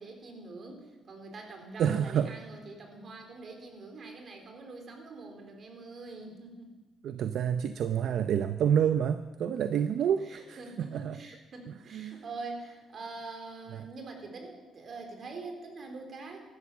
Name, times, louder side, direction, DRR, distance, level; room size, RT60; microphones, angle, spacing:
voice 1, 0.0-6.8 9.5-16.4, right 3 dB, 50° right, 3 dB, 3.9 m, -44 dB
voice 2, 1.8-2.3 7.0-11.2 11.7-12.2 13.7-13.9, right 8 dB, 70° right, 10 dB, 0.6 m, -29 dB
15.5 x 12.0 x 7.3 m, 1.2 s
cardioid pair, 90°, 0 cm